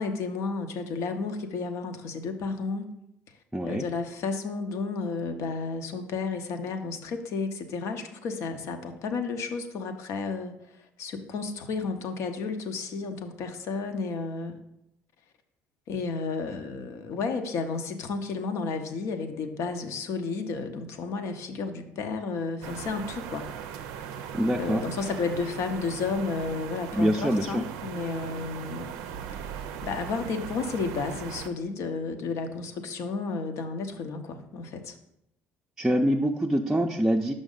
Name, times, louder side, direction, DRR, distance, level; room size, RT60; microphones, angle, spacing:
voice 1, 0.0-2.9 3.6-10.6 11.0-14.6 15.9-23.5 24.5-28.9 29.5-35.0, left 4 dB, 70° left, 7 dB, 0.7 m, -32 dB
voice 2, 3.5-3.9 24.3-24.8 26.9-27.6 35.8-37.3, equal, 10° right, 0 dB, 0.5 m, -25 dB
sound 1, 22.6-31.5, right 8 dB, 85° right, 0.4 m, -39 dB
6.1 x 5.1 x 3.8 m, 0.80 s
supercardioid pair, 70°, 5 cm